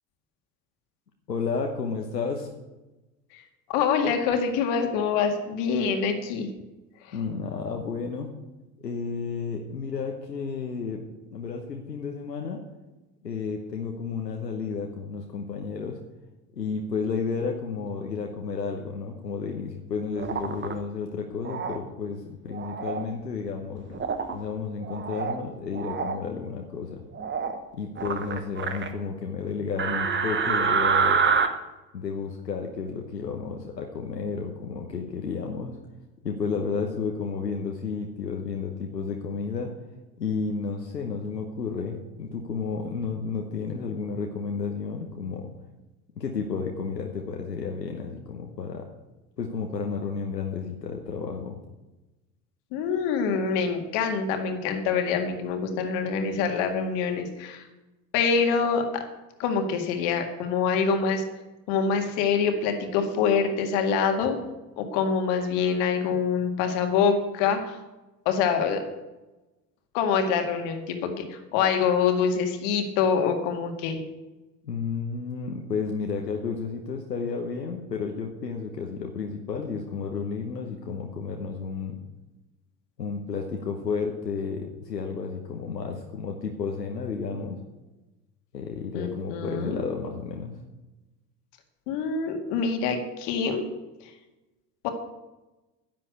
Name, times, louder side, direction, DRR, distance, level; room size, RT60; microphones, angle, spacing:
voice 1, 1.3-2.5 7.1-8.3 8.8-11.0 11.3-12.6 13.2-16.0 16.5-23.9 24.3-27.0 27.7-31.2 31.9-35.8 36.2-39.7 40.2-45.5 46.1-48.9 49.4-51.5 74.6-82.0 83.0-87.6 88.5-90.6, left 5 dB, 85° left, 2 dB, 1.1 m, -32 dB
voice 2, 3.7-6.5 52.7-57.6 58.1-59.0 59.4-61.2 61.7-64.4 64.8-67.8 68.3-68.8 69.9-74.0 88.9-89.8 91.9-93.6 94.8-94.9, left 6 dB, 60° left, 5 dB, 2.0 m, -25 dB
sound 1, 20.2-20.7 21.4-21.8 22.5-23.0 23.9-24.3 24.8-25.4 25.7-26.2 27.1-27.6 28.0-28.9 29.8-31.5, right 6 dB, 25° right, 1.2 m, -26 dB
10.5 x 7.6 x 8.3 m, 1.1 s
figure-of-eight pair, 65°, 48 cm